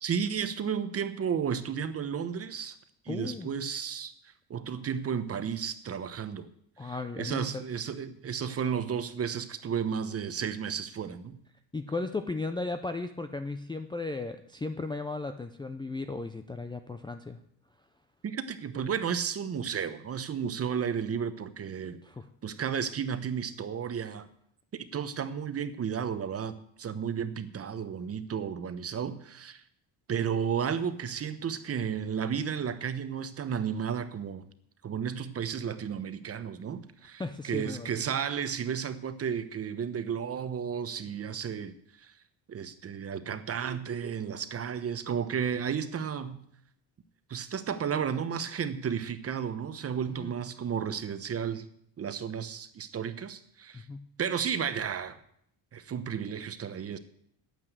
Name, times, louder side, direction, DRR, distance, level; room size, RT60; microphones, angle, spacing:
voice 1, 0.0-2.8 3.0-4.1 4.5-6.5 6.8-11.4 18.2-22.0 22.4-24.3 24.7-29.6 30.1-34.4 34.8-41.7 42.0-42.1 42.5-46.4 47.3-51.7 52.0-53.9 54.2-55.2 55.7-57.0, right 7 dB, 35° right, 12 dB, 0.9 m, -33 dB
voice 2, 3.1-3.5 6.8-7.6 11.7-17.4 22.0-22.3 37.2-37.9 50.2-50.3 53.7-54.0, left 3 dB, 10° left, 5 dB, 0.5 m, -35 dB
10.0 x 9.1 x 8.0 m, 0.68 s
cardioid pair, 140°, 44 cm